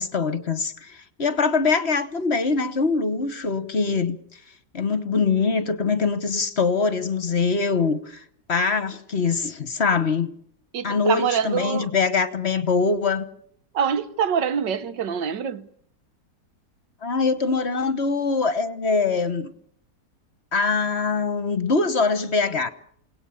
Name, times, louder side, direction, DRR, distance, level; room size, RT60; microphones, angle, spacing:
voice 1, 0.0-4.2 4.7-10.3 10.8-13.2 17.0-19.5 20.5-22.7, left 4 dB, 40° left, 1.3 m, -23 dB
voice 2, 10.7-11.9 13.7-15.7, right 7 dB, 90° right, 1.9 m, -25 dB
29.5 x 18.5 x 7.1 m
omnidirectional pair, 1.8 m